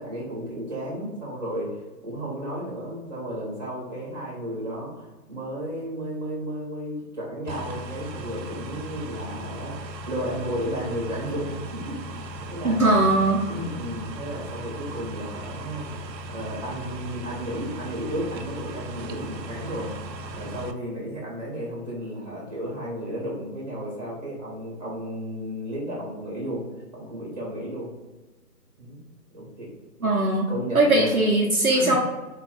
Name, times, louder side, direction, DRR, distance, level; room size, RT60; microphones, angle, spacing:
voice 1, 0.0-12.8 13.5-19.9 20.3-26.6 26.9-27.9 28.8-29.0 29.3-29.7 30.0-30.1 30.5-31.3 31.7-31.9, equal, 25° right, -5 dB, 1.2 m, -33 dB
sound 1, 7.5-20.7, right 1 dB, 90° right, 0.6 m, -37 dB
voice 2, 12.6-13.4 30.0-30.5 30.7-32.1, right 2 dB, 60° right, -3 dB, 0.8 m, -20 dB
4.4 x 2.3 x 4.2 m, 1.2 s
figure-of-eight pair, 165°, 49 cm